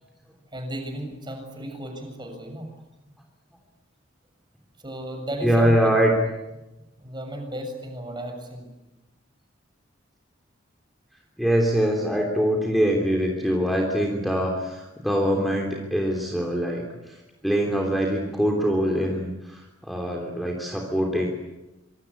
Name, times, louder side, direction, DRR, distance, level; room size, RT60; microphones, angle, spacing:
voice 1, 0.5-2.7 4.8-5.9 7.0-8.7, right 1 dB, 25° right, 4 dB, 7.1 m, -34 dB
voice 2, 5.4-6.2 11.4-21.3, equal, ahead, -1 dB, 3.3 m, -23 dB
26.0 x 25.0 x 8.6 m, 0.99 s
head